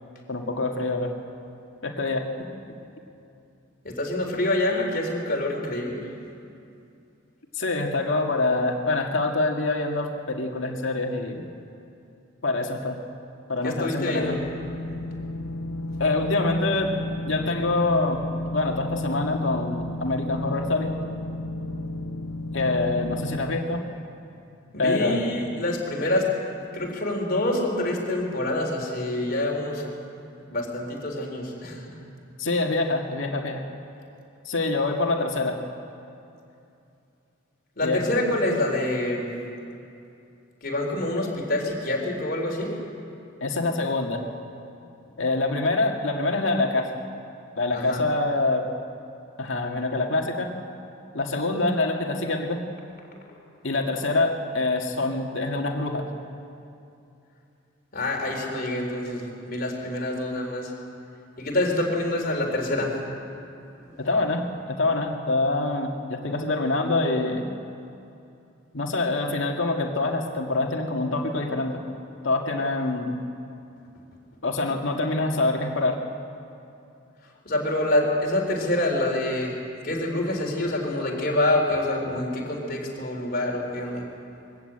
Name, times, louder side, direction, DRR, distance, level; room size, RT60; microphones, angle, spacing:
voice 1, 0.3-1.2 1.8-2.3 7.5-11.4 12.4-13.0 13.5-14.4 16.0-16.9 17.3-18.2 18.5-20.9 22.5-23.8 24.8-25.3 32.4-33.6 34.5-35.6 37.8-38.1 43.4-44.2 45.2-46.9 47.6-48.7 49.4-50.5 51.1-52.6 53.6-56.1 64.0-67.4 68.7-71.8 72.2-73.2 74.4-76.0, left 2 dB, 70° left, 2 dB, 2.1 m, -25 dB
voice 2, 3.8-6.1 13.6-14.4 24.7-26.3 26.7-29.9 30.5-31.9 37.8-39.3 40.6-42.8 47.7-48.0 57.9-60.7 61.4-63.0 77.4-79.6 79.8-84.0, left 1 dB, 50° left, 0 dB, 3.9 m, -26 dB
sound 1, 14.2-23.5, left 1 dB, 90° left, 0.8 m, -32 dB
22.5 x 15.0 x 8.9 m, 2.7 s
head